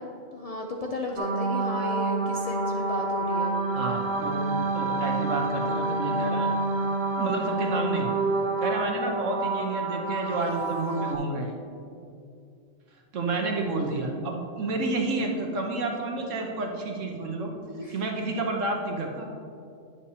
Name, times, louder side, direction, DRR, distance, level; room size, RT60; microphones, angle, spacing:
voice 1, 0.0-3.6 17.8-18.0, left 2 dB, 70° left, 1 dB, 0.3 m, -34 dB
sound 1, 1.2-11.1, right 2 dB, 50° right, 0.6 m, -28 dB
voice 2, 3.7-6.5 7.2-8.1 8.6-11.5 13.1-17.5 17.9-19.3, right 2 dB, 75° right, 1 dB, 1.3 m, -30 dB
10.0 x 7.0 x 2.8 m, 2.5 s
omnidirectional pair, 1.3 m